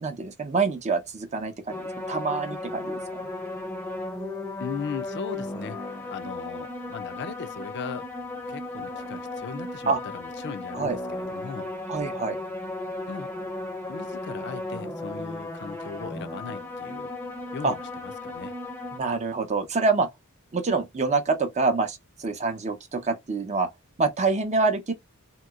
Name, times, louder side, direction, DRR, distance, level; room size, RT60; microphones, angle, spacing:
voice 1, 0.0-3.0 9.9-10.0 10.7-11.0 11.9-12.4 17.6-17.7 18.9-20.1 20.5-23.7 24.0-24.9, right 4 dB, 30° right, 0.6 m, -26 dB
sound 1, 1.7-19.0, left 2 dB, 10° left, 0.6 m, -35 dB
voice 2, 4.6-5.8 6.1-8.0 8.5-11.7 13.1-13.3 13.9-17.1 17.5-18.5, left 5 dB, 55° left, 0.5 m, -38 dB
2.9 x 2.8 x 2.3 m
head